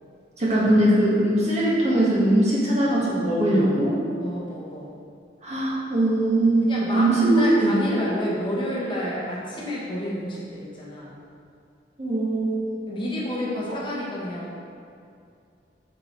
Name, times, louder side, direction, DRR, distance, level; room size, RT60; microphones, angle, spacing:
voice 1, 0.4-4.0 5.4-8.0 12.0-12.7, right 1 dB, 40° right, -6 dB, 1.5 m, -21 dB
voice 2, 4.2-4.9 6.7-11.2 12.9-14.6, left 1 dB, 30° left, -5 dB, 1.0 m, -30 dB
8.4 x 4.3 x 3.1 m, 2.4 s
head